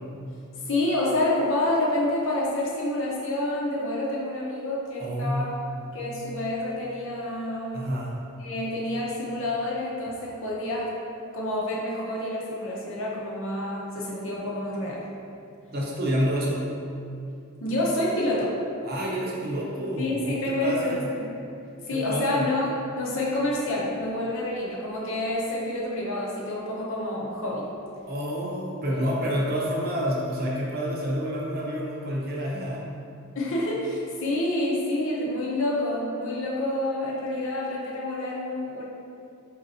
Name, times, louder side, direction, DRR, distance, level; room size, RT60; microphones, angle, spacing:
voice 1, 0.7-5.5 5.9-7.9 8.4-10.9 11.3-15.0 17.6-18.5 20.0-21.3 21.9-27.7 28.9-29.3 33.3-38.8, left 1 dB, 60° left, -5 dB, 0.8 m, -28 dB
voice 2, 5.0-5.6 7.7-8.2 15.7-16.6 18.8-21.1 21.9-22.5 28.1-32.9, equal, 45° right, -4 dB, 0.7 m, -28 dB
4.1 x 3.9 x 2.7 m, 2.5 s
head